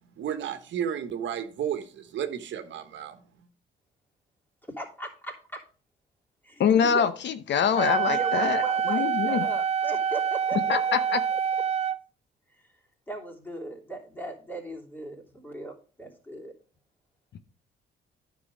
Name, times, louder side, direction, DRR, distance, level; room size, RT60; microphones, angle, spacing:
voice 1, 0.2-3.2, right 9 dB, 70° right, 1.2 m, -32 dB
voice 2, 4.8-5.6 6.4-7.1 8.1-11.4 12.5-12.6 13.1-16.5, right 2 dB, 10° left, 3.1 m, -38 dB
voice 3, 6.6-8.6 8.9-9.5 10.7-11.2, left 7 dB, 65° left, 0.8 m, -24 dB
Wind instrument woodwind instrument, 7.8-12.0, right 7 dB, 30° right, 0.5 m, -26 dB
9.9 x 6.1 x 4.9 m
cardioid pair, 90°, 20 cm